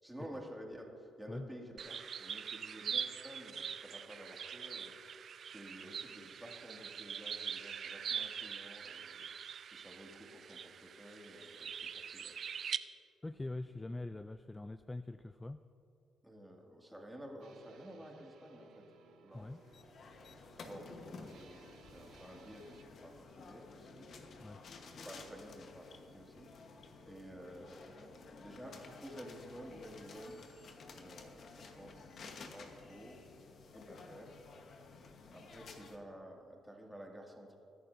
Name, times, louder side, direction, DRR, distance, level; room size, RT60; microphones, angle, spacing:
voice 1, 0.0-12.4 16.2-18.9 19.2-19.5 20.6-24.1 24.8-26.7 27.0-28.1 28.4-30.4 30.9-32.0 32.2-33.2 33.7-34.3 35.3-37.6, equal, 5° right, -1 dB, 2.3 m, -52 dB
sound 1, 1.8-12.8, right 7 dB, 55° right, 0.4 m, -43 dB
voice 2, 13.2-15.6 19.3-19.6 24.4-24.6, left 2 dB, 15° left, 11 dB, 0.3 m, -43 dB
sound 2, 17.4-22.8, right 6 dB, 80° right, 1.1 m, -62 dB
sound 3, 19.3-36.0, left 4 dB, 55° left, 1.2 m, -53 dB
22.0 x 11.0 x 2.7 m, 2.7 s
cardioid pair, 90°, 0 cm